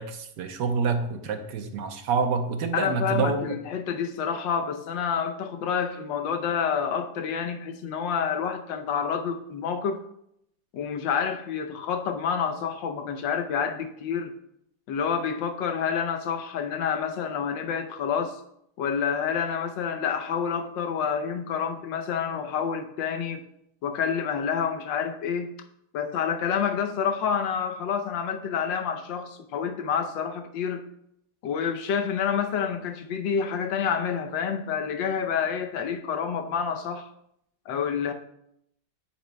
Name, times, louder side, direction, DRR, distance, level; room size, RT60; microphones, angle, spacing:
voice 1, 0.0-3.6, right 5 dB, 75° right, 7 dB, 1.4 m, -27 dB
voice 2, 2.7-10.0 10.7-14.3 14.9-18.4 18.8-23.4 23.8-25.5 25.9-30.8 31.4-37.1 37.7-38.1, left 7 dB, 90° left, 7 dB, 1.5 m, -28 dB
9.9 x 7.8 x 2.2 m, 0.75 s
omnidirectional pair, 1.9 m